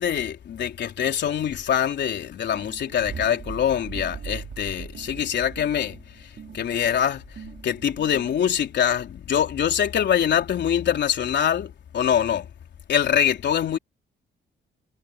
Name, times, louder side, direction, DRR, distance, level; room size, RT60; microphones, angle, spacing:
voice 1, 0.0-6.0 6.5-7.2 7.6-12.5 12.9-13.8, left 9 dB, 60° left, 3.9 m, -24 dB
sound 1, 2.5-8.7, right 7 dB, 55° right, 5.6 m, -40 dB
cardioid pair, 90°, 20 cm